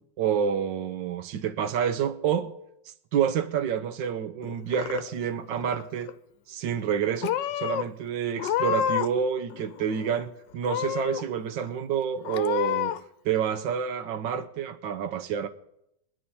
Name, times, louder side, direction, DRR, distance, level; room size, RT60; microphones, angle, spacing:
voice 1, 0.2-2.5 3.1-6.1 6.5-13.0 13.2-15.5, right 8 dB, 85° right, 1.5 m, -28 dB
Purr / Meow, 4.4-5.3 5.6-6.1 6.8-7.0 7.2-7.8 8.3-9.2 9.5-10.2 10.6-11.2 11.7-11.8 12.2-13.0, left 10 dB, 85° left, 1.3 m, -29 dB
23.5 x 10.5 x 2.8 m
omnidirectional pair, 1.9 m